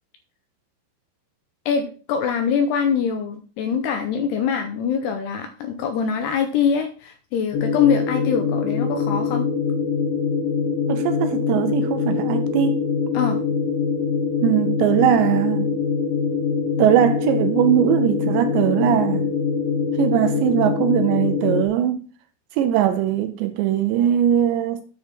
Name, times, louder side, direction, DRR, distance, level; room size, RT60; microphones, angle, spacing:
voice 1, 1.7-9.5 13.1-13.4, left 6 dB, 80° left, 2.5 m, -23 dB
sound 1, 7.5-21.7, left 5 dB, 60° left, 2.6 m, -23 dB
voice 2, 10.9-12.8 14.4-15.8 16.8-19.3 20.0-22.1 22.6-24.8, right 10 dB, 80° right, 2.7 m, -20 dB
9.6 x 4.2 x 6.0 m
omnidirectional pair, 5.5 m